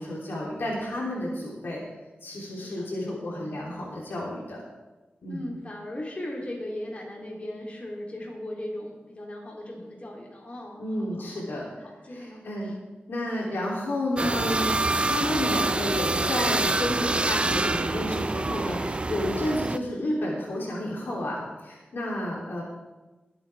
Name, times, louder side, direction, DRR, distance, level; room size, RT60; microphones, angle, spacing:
voice 1, 0.0-1.8 2.2-4.6 5.2-5.5 10.8-12.7 13.1-22.6, left 1 dB, 75° left, -3 dB, 3.2 m, -31 dB
voice 2, 2.6-3.1 5.3-11.4 11.8-12.8, left 1 dB, 35° left, -3 dB, 3.2 m, -38 dB
sound 1, 14.2-19.8, right 2 dB, 30° right, 0.4 m, -26 dB
20.5 x 8.3 x 3.5 m, 1.2 s
wide cardioid pair, 80°, 4 cm